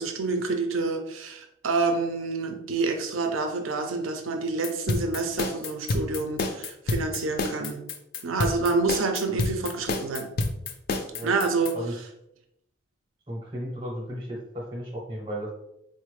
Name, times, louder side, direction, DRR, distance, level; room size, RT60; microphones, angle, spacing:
voice 1, 0.0-7.8 8.2-10.3 11.2-11.7, right 3 dB, 80° right, 5 dB, 0.5 m, -28 dB
sound 1, 4.6-11.7, left 3 dB, 45° left, 0.4 m, -28 dB
voice 2, 13.3-15.5, equal, 30° right, -4 dB, 0.7 m, -34 dB
4.1 x 2.1 x 3.1 m, 0.81 s
head